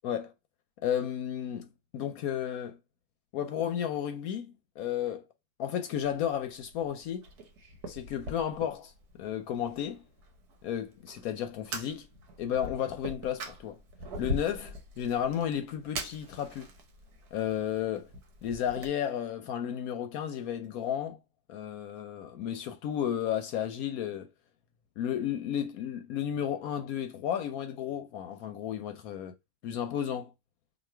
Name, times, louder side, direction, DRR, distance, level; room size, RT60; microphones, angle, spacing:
voice 1, 0.8-2.8 3.3-5.2 5.6-7.2 7.9-8.9 9.2-10.0 10.6-12.1 12.4-13.8 14.2-16.7 17.3-18.1 18.4-21.2 21.5-24.3 25.0-29.3 29.6-30.3, left 9 dB, 70° left, 0.9 m, -33 dB
Fire, 5.9-18.9, equal, 75° right, 1.4 m, -43 dB
3.1 x 2.5 x 4.3 m
omnidirectional pair, 1.7 m